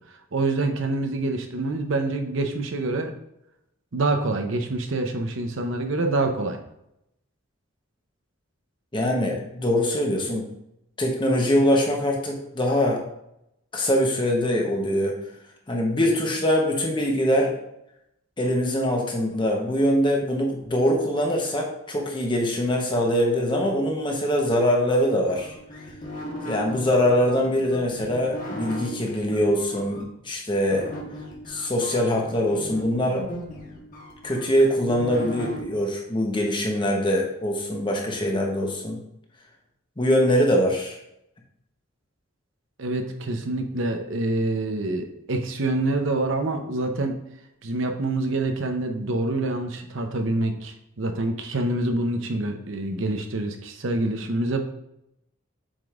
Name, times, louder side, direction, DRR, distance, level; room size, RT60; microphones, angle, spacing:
voice 1, 0.3-3.1 3.9-6.6 42.8-47.2 47.6-54.6, right 2 dB, 65° right, 5 dB, 0.7 m, -26 dB
voice 2, 8.9-10.5 11.0-13.0 13.7-15.2 15.7-17.6 18.4-25.5 26.4-30.9 31.5-33.3 34.2-39.0 40.0-41.0, equal, 25° left, 0 dB, 0.9 m, -23 dB
sound 1, 25.3-30.0 30.7-35.6, left 1 dB, 40° left, 1.5 m, -37 dB
7.4 x 5.1 x 2.5 m, 0.81 s
head